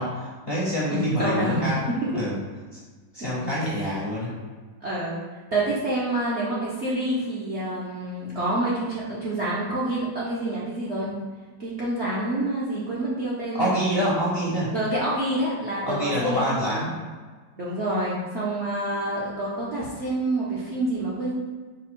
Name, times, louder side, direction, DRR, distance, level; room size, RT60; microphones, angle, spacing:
voice 1, 0.0-1.8 2.1-2.4 3.1-4.3 13.6-14.7 15.9-16.9, equal, 50° left, -7 dB, 0.7 m, -26 dB
voice 2, 0.9-1.9 3.2-4.0 4.8-5.2 5.5-11.1 11.6-13.8 14.7-16.5 17.6-21.3, right 1 dB, 55° right, -8 dB, 0.8 m, -27 dB
5.1 x 2.2 x 4.4 m, 1.4 s
omnidirectional pair, 2.0 m